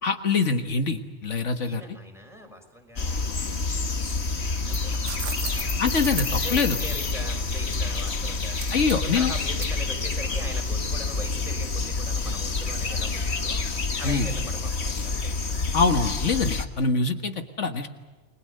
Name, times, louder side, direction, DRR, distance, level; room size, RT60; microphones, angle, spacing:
voice 1, 0.0-2.0 5.8-6.8 8.7-9.3 14.0-14.3 15.7-17.9, left 4 dB, 80° left, 6 dB, 2.0 m, -24 dB
voice 2, 1.5-3.7 4.4-5.8 6.2-8.6 8.9-13.7 14.0-15.6, equal, ahead, 2 dB, 5.7 m, -41 dB
sound 1, 3.0-16.7, left 3 dB, 60° left, 1.8 m, -28 dB
sound 2, 4.6-10.6, right 7 dB, 85° right, 1.4 m, -39 dB
30.0 x 22.0 x 6.6 m, 1.2 s
omnidirectional pair, 1.2 m